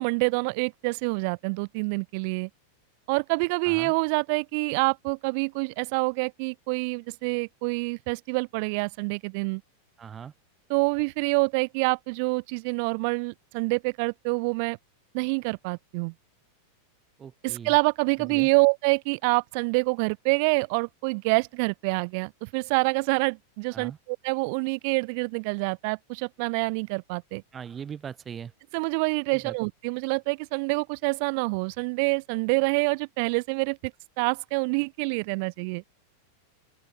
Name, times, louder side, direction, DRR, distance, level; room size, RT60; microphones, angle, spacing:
voice 1, 0.0-2.5 3.1-9.6 10.7-14.8 15.1-16.1 17.4-23.9 24.2-27.4 28.7-33.8 34.2-35.8, right 32 dB, 45° right, 2.4 m, -26 dB
voice 2, 10.0-10.3 17.2-17.7 18.2-18.5 23.7-24.0 27.5-28.5 29.3-29.6, right 7 dB, 20° right, 4.3 m, -40 dB
open air
figure-of-eight pair, 90°, 0 cm